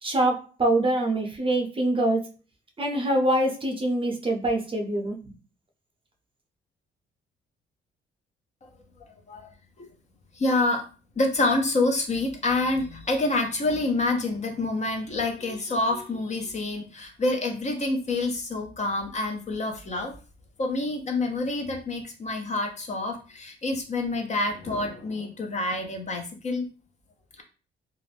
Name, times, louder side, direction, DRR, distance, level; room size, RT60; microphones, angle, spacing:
voice 1, 0.0-2.2 2.8-5.2, right 1 dB, 25° right, 1 dB, 0.6 m, -24 dB
voice 2, 10.4-10.8 11.2-20.1 20.6-26.7, left 2 dB, 35° left, 4 dB, 0.6 m, -27 dB
2.4 x 2.0 x 3.3 m, 0.36 s
cardioid pair, 90°, 20 cm